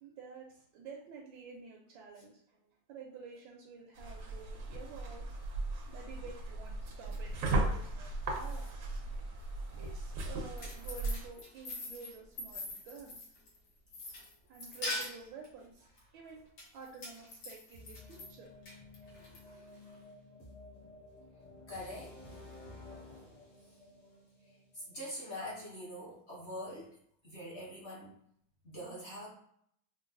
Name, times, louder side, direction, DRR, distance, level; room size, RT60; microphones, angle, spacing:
voice 1, 0.0-5.3 5.9-9.0 9.8-13.2 14.5-15.9 16.1-16.4 16.7-18.5 19.0-19.1, right 4 dB, 85° right, -1 dB, 1.3 m, -50 dB
sound 1, 4.0-11.3, right 2 dB, 65° right, 0.8 m, -37 dB
voice 2, 8.2-8.6 9.0-10.1 19.1-20.0 21.7-22.7 23.7-23.8 24.4-27.0 27.2-28.1 28.6-29.3, left 1 dB, 40° left, -6 dB, 1.2 m, -46 dB
sound 2, 10.3-13.6 13.9-15.5 16.6-18.3 18.7-19.4, left 2 dB, 65° left, 1.5 m, -42 dB
sound 3, 17.7-25.6, left 2 dB, 80° left, 2.2 m, -54 dB
4.5 x 2.3 x 2.5 m, 0.70 s
omnidirectional pair, 2.1 m